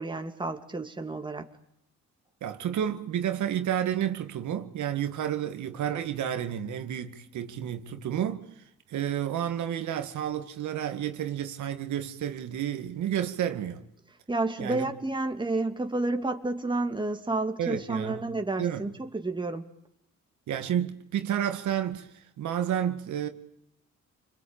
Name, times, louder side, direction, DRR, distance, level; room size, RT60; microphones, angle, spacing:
voice 1, 0.0-1.4 14.3-19.7, right 2 dB, 15° right, 2.6 m, -30 dB
voice 2, 2.4-8.4 8.9-13.8 14.6-14.9 17.6-18.2 18.6-18.8 20.5-23.3, right 10 dB, 75° right, 2.2 m, -30 dB
29.0 x 21.5 x 9.0 m
cardioid pair, 90°, 30 cm